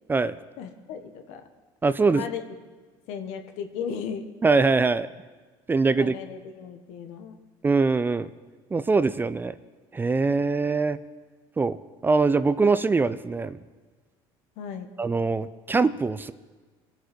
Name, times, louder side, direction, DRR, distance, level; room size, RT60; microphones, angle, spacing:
voice 1, 0.6-1.4 2.1-2.4 3.1-4.2 6.0-7.4 14.6-14.9, left 7 dB, 75° left, 7 dB, 1.4 m, -36 dB
voice 2, 1.8-2.3 4.4-5.1 5.7-6.1 7.6-8.3 8.7-9.5 9.9-11.0 11.6-11.8 12.0-13.6 15.0-16.3, right 4 dB, 20° right, 15 dB, 0.5 m, -22 dB
22.5 x 7.6 x 5.3 m, 1.3 s
supercardioid pair, 100°, 11 cm